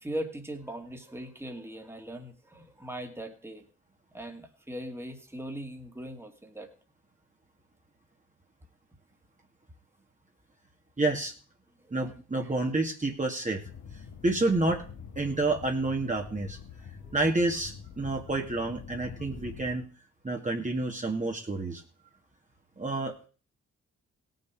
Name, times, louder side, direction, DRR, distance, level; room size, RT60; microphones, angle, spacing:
voice 1, 0.0-3.7 4.1-6.7 11.8-12.1 12.4-12.6 15.2-15.3 17.0-17.2, right 1 dB, 10° right, 4 dB, 2.3 m, -40 dB
voice 2, 11.0-11.3 11.9-13.6 14.2-14.8 15.2-16.6 17.1-19.8 20.2-21.8 22.8-23.1, right 2 dB, 25° right, 1 dB, 2.1 m, -29 dB
sound 1, 13.6-19.8, left 6 dB, 75° left, 2.1 m, -45 dB
17.0 x 6.6 x 4.7 m, 0.39 s
supercardioid pair, 55°, 30 cm